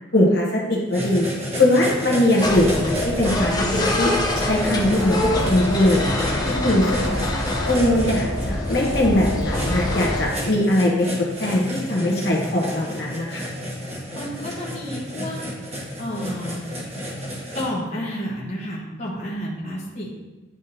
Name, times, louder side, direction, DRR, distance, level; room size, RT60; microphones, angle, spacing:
voice 1, 0.1-1.2 1.6-5.2 5.5-6.3 6.6-7.2 7.6-11.1 11.4-13.5, left 1 dB, 55° left, -4 dB, 1.2 m, -21 dB
sound 1, 0.9-17.6, equal, 30° right, 1.3 m, -31 dB
sound 2, 2.4-10.3, left 1 dB, 20° left, 0.6 m, -25 dB
voice 2, 14.1-15.4 16.0-16.6 17.5-20.1, equal, 35° left, -5 dB, 1.2 m, -30 dB
9.9 x 3.6 x 2.7 m, 1.1 s
head